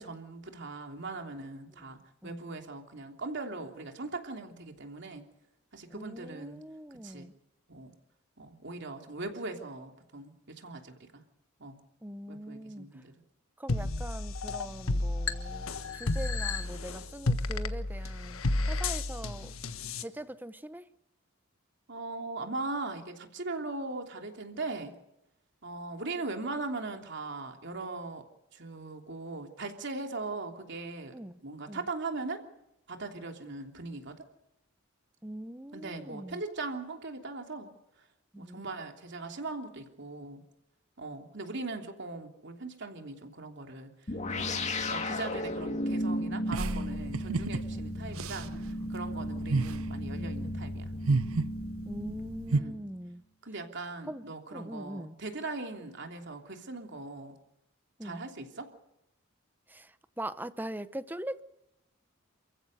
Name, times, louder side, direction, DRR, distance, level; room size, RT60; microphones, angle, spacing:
voice 1, 0.0-5.3 5.7-6.6 7.0-7.3 7.7-7.9 8.4-11.2 11.6-11.8 12.3-13.1 21.9-24.9 25.6-28.2 28.5-31.1 31.4-32.4 32.9-34.2 35.7-37.7 38.3-40.4 41.0-43.9 44.3-50.9 52.5-52.8 53.4-57.4 58.0-58.7, right 3 dB, 60° right, 4 dB, 3.2 m, -40 dB
voice 2, 5.9-7.3 12.0-12.9 13.6-19.5 20.0-20.9 31.1-31.4 31.7-31.9 35.2-36.4 38.3-38.6 47.3-47.8 51.9-53.2 54.1-55.2 58.0-58.2 59.7-61.4, right 1 dB, 10° right, 13 dB, 0.8 m, -42 dB
sound 1, 13.7-20.0, left 2 dB, 85° left, 1.4 m, -32 dB
sound 2, 44.1-52.9, left 1 dB, 35° left, 2.3 m, -35 dB
sound 3, 46.5-52.6, right 3 dB, 90° right, 0.7 m, -32 dB
29.0 x 15.5 x 6.7 m, 0.86 s
head